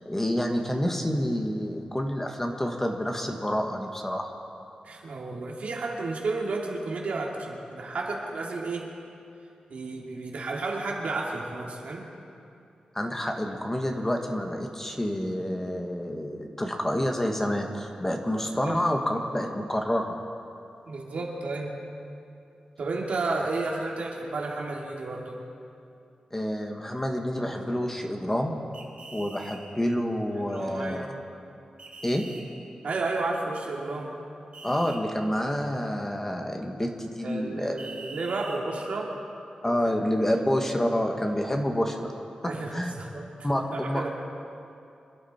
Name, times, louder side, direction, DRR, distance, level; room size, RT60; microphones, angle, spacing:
voice 1, 0.0-4.3 12.9-20.1 26.3-28.5 29.1-31.1 32.0-32.2 34.6-37.7 39.6-42.1 42.4-42.9 43.4-44.1, equal, 15° left, 3 dB, 1.5 m, -28 dB
voice 2, 4.8-8.9 9.7-12.1 18.6-18.8 20.9-21.7 22.8-25.4 30.3-31.1 32.8-34.1 37.2-39.1 39.6-40.0 42.4-43.2 43.7-44.1, right 3 dB, 75° right, -1 dB, 2.6 m, -32 dB
sound 1, 28.7-29.6 31.8-32.4 34.5-35.0 37.8-38.6, right 3 dB, 55° right, 3.9 m, -43 dB
26.5 x 11.5 x 4.4 m, 2.6 s
wide cardioid pair, 90°, 2 cm